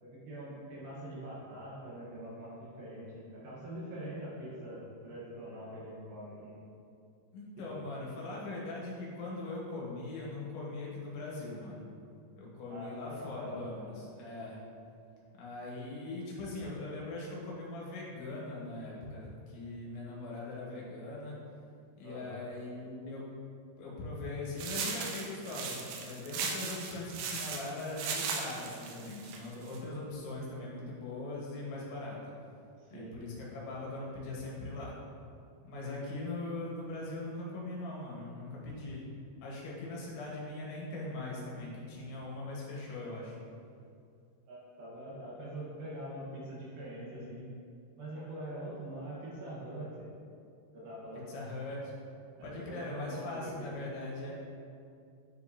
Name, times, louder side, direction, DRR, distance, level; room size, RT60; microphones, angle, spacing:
voice 1, 0.0-6.6 7.7-7.8 12.7-14.0 22.0-22.4 32.8-33.1 44.5-47.5 48.0-50.1 50.7-51.2 52.4-53.7, right 1 dB, 65° right, -7 dB, 2.8 m, -44 dB
voice 2, 7.3-11.9 12.4-14.6 15.3-21.4 22.0-23.3 23.8-32.3 32.9-34.9 35.6-39.0 39.4-43.4 51.3-51.9 52.4-54.3, left 2 dB, 80° left, -4 dB, 3.7 m, -41 dB
sound 1, 24.6-29.8, right 5 dB, 85° right, 2.4 m, -38 dB
10.5 x 5.2 x 2.8 m, 2.4 s
omnidirectional pair, 5.2 m